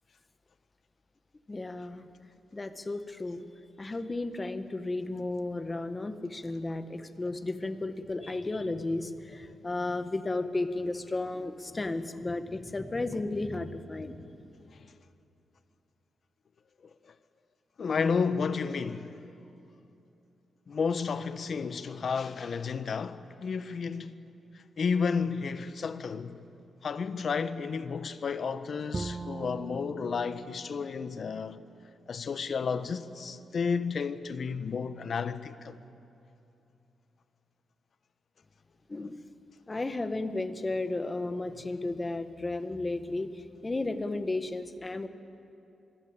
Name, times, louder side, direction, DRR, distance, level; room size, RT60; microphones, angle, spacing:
voice 1, 1.5-2.1 2.5-3.4 3.8-14.2 38.9-39.2 39.7-45.1, left 2 dB, 20° left, 1.4 m, -33 dB
voice 2, 17.8-19.2 20.7-24.2 24.8-26.4 26.8-31.7 32.1-35.8, left 5 dB, 50° left, 1.2 m, -32 dB
Bowed string instrument, 28.9-32.1, right 3 dB, 20° right, 0.6 m, -41 dB
26.5 x 22.5 x 9.0 m
cardioid pair, 120°, 0 cm